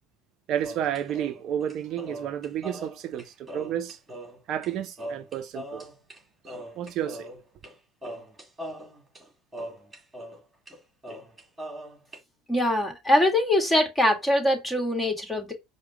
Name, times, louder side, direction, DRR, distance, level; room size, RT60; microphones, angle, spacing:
voice 1, 0.5-4.0 4.5-5.9 6.8-7.3, right 10 dB, 55° right, 0.5 m, -31 dB
sound 1, 0.6-4.7 5.0-6.2 6.4-7.7 8.0-10.4 10.7-10.8 11.0-12.2, equal, 15° right, 2.1 m, -40 dB
voice 2, 12.5-15.5, left 1 dB, 15° left, 1.7 m, -23 dB
4.8 x 2.2 x 4.6 m
hypercardioid pair, 85°, 0 cm